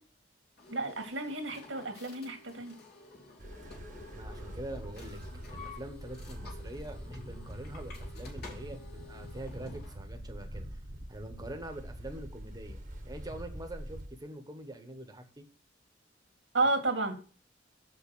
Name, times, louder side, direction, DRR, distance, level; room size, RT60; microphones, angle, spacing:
sound 1, 0.6-10.0, left 3 dB, 60° left, 2.6 m, -51 dB
voice 1, 0.7-2.7 16.5-17.1, right 2 dB, 85° right, 4 dB, 2.1 m, -31 dB
sound 2, 3.4-14.1, right 1 dB, 45° right, 1.3 m, -44 dB
voice 2, 4.1-5.2 5.5-10.8 11.1-15.5, right 1 dB, 20° right, 6 dB, 1.3 m, -44 dB
7.4 x 6.0 x 6.2 m, 0.39 s
head